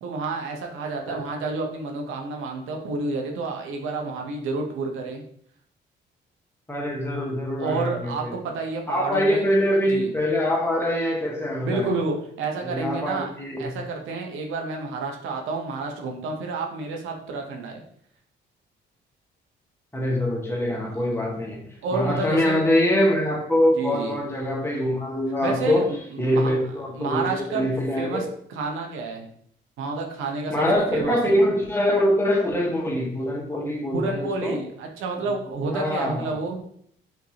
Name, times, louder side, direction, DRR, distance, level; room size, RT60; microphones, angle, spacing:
voice 1, 0.0-5.2 7.6-9.5 9.9-10.1 11.6-13.3 13.6-17.8 20.7-21.1 21.8-22.6 23.7-24.2 25.4-26.5 26.9-27.7 28.0-29.3 29.8-30.6 30.9-31.2 33.9-36.6, right 3 dB, 85° right, 2 dB, 0.8 m, -30 dB
voice 2, 6.7-8.3 8.9-11.9 12.6-13.8 19.9-21.6 21.9-25.9 26.2-28.2 30.5-34.6 35.6-36.3, left 1 dB, 10° left, -1 dB, 1.1 m, -24 dB
5.2 x 2.6 x 2.8 m, 0.65 s
cardioid pair, 90°, 20 cm